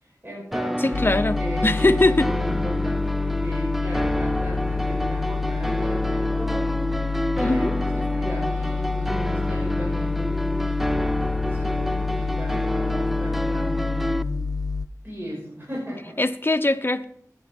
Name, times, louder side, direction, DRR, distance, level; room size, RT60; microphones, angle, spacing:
voice 1, 0.0-1.0 1.3-11.1 11.4-14.5 15.0-16.2, equal, 35° right, -5 dB, 5.8 m, -36 dB
sound 1, 0.5-14.2, equal, 5° right, 0.4 m, -28 dB
voice 2, 0.8-2.3 7.4-7.7 16.2-17.0, left 2 dB, 35° left, 9 dB, 0.8 m, -21 dB
sound 2, 0.9-14.9, left 4 dB, 90° left, 0.7 m, -28 dB
15.5 x 9.8 x 4.5 m, 0.69 s
wide cardioid pair, 55°, 6 cm